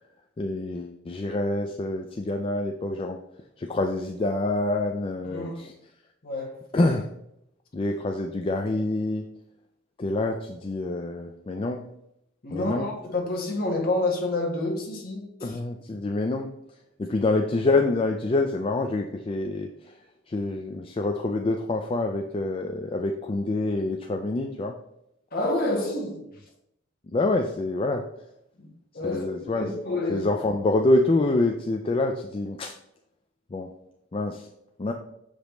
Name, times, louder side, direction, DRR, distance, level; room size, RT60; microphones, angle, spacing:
voice 1, 0.4-3.2 3.6-5.7 6.7-7.1 7.7-9.3 10.0-11.9 12.5-12.9 15.4-16.5 17.0-19.9 20.3-24.8 27.1-28.1 29.0-29.7 30.1-32.7 33.5-33.7 34.1-34.5 34.8-34.9, left 2 dB, 25° left, 4 dB, 0.3 m, -26 dB
voice 2, 5.2-5.6 6.2-6.6 12.4-15.6 25.3-26.3 28.6-28.7 28.9-29.2 29.6-30.3, left 2 dB, 45° left, 1 dB, 1.2 m, -28 dB
6.5 x 5.0 x 3.1 m, 0.79 s
head